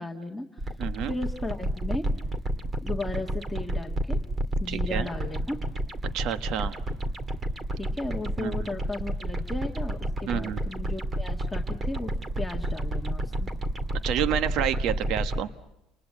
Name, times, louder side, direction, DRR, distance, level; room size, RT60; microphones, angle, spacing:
voice 1, 0.0-0.7 1.0-2.1 2.8-4.2 4.6-5.6 7.8-13.5, left 2 dB, 5° left, 0 dB, 1.7 m, -35 dB
sound 1, 0.6-15.4, right 1 dB, 25° right, 2.3 m, -30 dB
voice 2, 0.8-1.1 4.7-5.1 6.1-6.8 8.4-8.5 10.3-10.6 14.0-15.5, right 10 dB, 65° right, 11 dB, 1.2 m, -29 dB
30.0 x 20.0 x 8.9 m, 0.91 s
cardioid pair, 115°, 0 cm